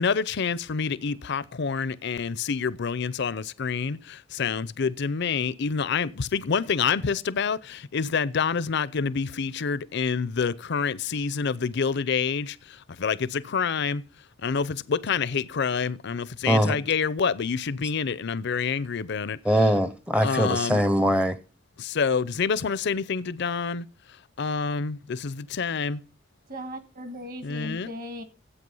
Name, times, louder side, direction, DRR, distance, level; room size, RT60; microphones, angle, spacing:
voice 1, 0.0-12.6 13.0-14.0 14.4-19.4 20.2-20.8 21.8-23.9 24.4-26.0 27.4-27.9, left 5 dB, 60° left, 0.6 m, -27 dB
voice 2, 16.5-16.8 19.4-21.4, equal, 5° right, 0.6 m, -22 dB
voice 3, 26.5-28.2, equal, 45° right, 1.7 m, -37 dB
12.5 x 8.2 x 5.4 m
head